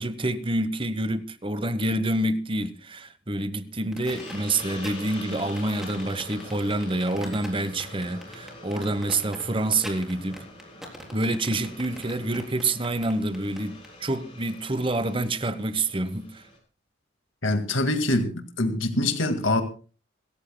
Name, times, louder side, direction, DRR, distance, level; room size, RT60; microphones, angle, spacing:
voice 1, 0.0-10.4 11.1-16.4, right 2 dB, 25° right, 1.0 m, -27 dB
sound 1, 3.9-13.9, equal, ahead, 3.8 m, -42 dB
Hiss, 4.0-16.6, left 1 dB, 25° left, 7.4 m, -45 dB
voice 2, 17.4-19.6, left 2 dB, 75° left, 2.0 m, -24 dB
27.0 x 14.5 x 2.2 m
head